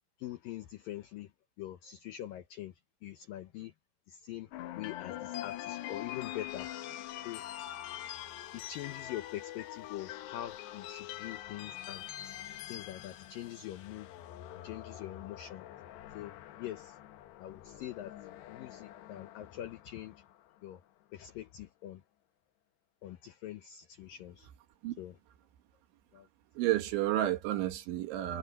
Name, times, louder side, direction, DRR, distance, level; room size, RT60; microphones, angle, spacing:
voice 1, 0.2-1.3 1.6-2.7 3.0-3.7 4.1-4.5 4.8-6.8 7.2-7.4 8.5-12.1 12.7-14.1 14.6-15.7 16.1-17.0 17.4-18.1 18.5-20.2 20.6-20.8 21.1-22.0 23.0-24.5 25.0-25.2 26.1-26.3, left 13 dB, 85° left, 1.9 m, -43 dB
sound 1, 4.5-20.7, left 13 dB, 70° left, 3.2 m, -44 dB
voice 2, 26.6-28.4, right 14 dB, 80° right, 4.0 m, -31 dB
omnidirectional pair, 5.3 m